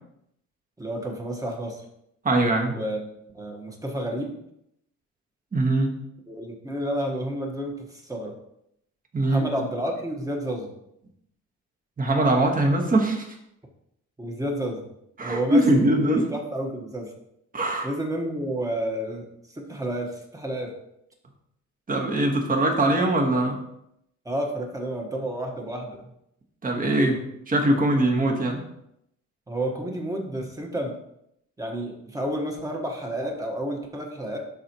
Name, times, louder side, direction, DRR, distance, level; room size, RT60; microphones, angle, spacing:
voice 1, 0.8-1.8 2.7-3.0 3.3-4.3 6.3-8.3 9.2-10.7 14.2-14.8 15.2-17.1 17.8-20.7 24.2-26.1 29.5-30.9 31.6-34.4, right 1 dB, 10° right, 1 dB, 1.4 m, -30 dB
voice 2, 2.2-2.8 5.5-6.0 9.1-9.5 12.0-13.4 15.2-16.3 17.5-17.9 21.9-23.6 26.6-28.6, right 1 dB, 25° right, 1 dB, 1.5 m, -22 dB
12.0 x 4.2 x 3.0 m, 0.78 s
cardioid pair, 125°, 31 cm